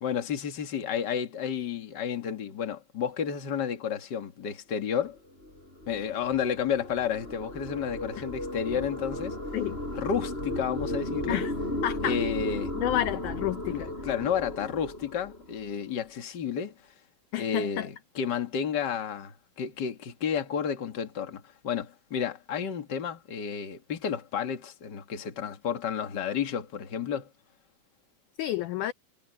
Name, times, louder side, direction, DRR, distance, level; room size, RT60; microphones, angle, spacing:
voice 1, 0.0-5.2 5.9-9.4 9.9-11.4 12.0-12.7 13.7-16.7 17.4-27.3, left 7 dB, 40° left, 1.9 m, -31 dB
sound 1, 5.2-15.8, left 1 dB, 15° left, 7.1 m, -35 dB
voice 2, 11.8-12.2 12.8-13.9 17.3-17.9 28.4-28.9, left 13 dB, 75° left, 1.9 m, -30 dB
omnidirectional pair, 4.2 m